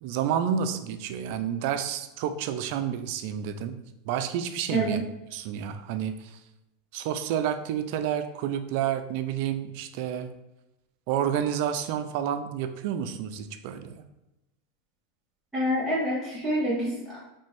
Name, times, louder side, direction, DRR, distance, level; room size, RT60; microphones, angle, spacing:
voice 1, 0.0-5.0 5.3-6.4 6.9-10.3 11.1-14.0, right 9 dB, 60° right, 9 dB, 0.4 m, -30 dB
voice 2, 15.5-17.2, equal, ahead, -11 dB, 1.5 m, -27 dB
4.2 x 3.4 x 3.3 m, 0.94 s
supercardioid pair, 130°, 0 cm